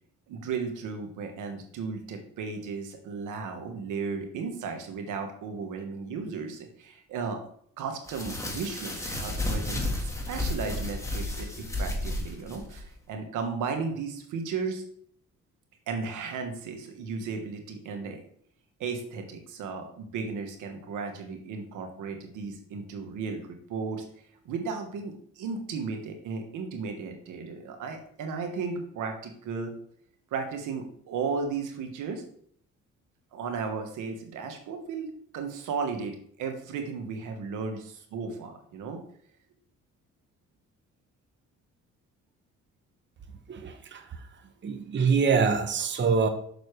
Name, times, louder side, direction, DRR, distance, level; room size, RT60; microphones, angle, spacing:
voice 1, 0.3-7.4 7.8-14.8 15.9-18.2 18.8-24.0 24.4-29.7 30.3-32.2 33.3-39.0, right 5 dB, 85° right, 5 dB, 1.3 m, -35 dB
sound 1, 8.1-12.8, left 1 dB, 10° left, 1.5 m, -32 dB
voice 2, 43.5-44.1 44.6-46.3, right 5 dB, 40° right, 7 dB, 0.9 m, -25 dB
6.6 x 6.2 x 3.2 m, 0.63 s
cardioid pair, 90°, 30 cm